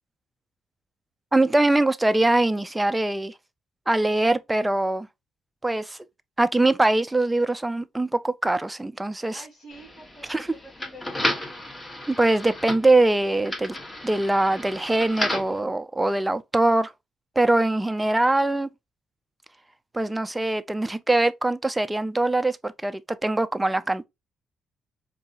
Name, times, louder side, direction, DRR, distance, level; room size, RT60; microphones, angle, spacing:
voice 1, 1.3-3.3 3.9-5.1 5.6-6.0 6.4-9.4 10.3-10.5 12.1-13.8 14.0-16.9 17.4-18.7 19.9-24.1, right 2 dB, 10° right, 0.4 m, -22 dB
voice 2, 9.3-11.4, equal, 40° left, 2.4 m, -47 dB
sound 1, 9.7-15.6, left 1 dB, 20° left, 1.0 m, -33 dB
4.6 x 2.6 x 2.4 m
cardioid pair, 90°, 0 cm